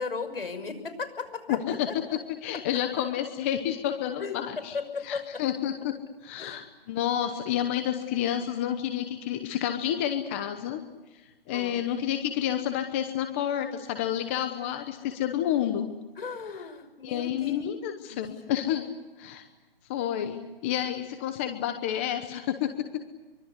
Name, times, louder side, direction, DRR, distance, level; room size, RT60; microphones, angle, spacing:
voice 1, 0.0-2.2 2.5-2.8 4.2-5.4 6.4-6.6 11.5-11.9 16.2-18.2, left 4 dB, 70° left, 11 dB, 6.0 m, -37 dB
voice 2, 1.5-1.9 2.4-4.7 5.1-6.0 6.2-10.8 11.5-15.9 17.0-18.9 19.2-19.4 19.9-22.7, left 10 dB, 15° left, 7 dB, 1.0 m, -29 dB
24.5 x 24.5 x 8.2 m, 1.1 s
hypercardioid pair, 165°, 30 cm